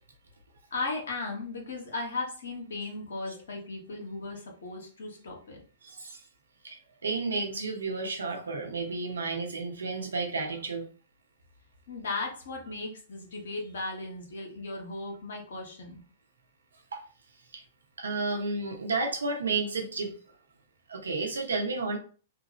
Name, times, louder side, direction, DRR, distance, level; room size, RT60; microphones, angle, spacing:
voice 1, 0.7-5.6 11.9-16.0, left 3 dB, 65° left, 0 dB, 1.4 m, -36 dB
voice 2, 5.8-6.2 6.6-10.9 16.9-17.0 17.5-17.6 18.0-20.1 20.9-22.0, right 3 dB, 80° right, 3 dB, 0.9 m, -32 dB
3.2 x 2.5 x 3.1 m, 0.39 s
figure-of-eight pair, 110°, 0 cm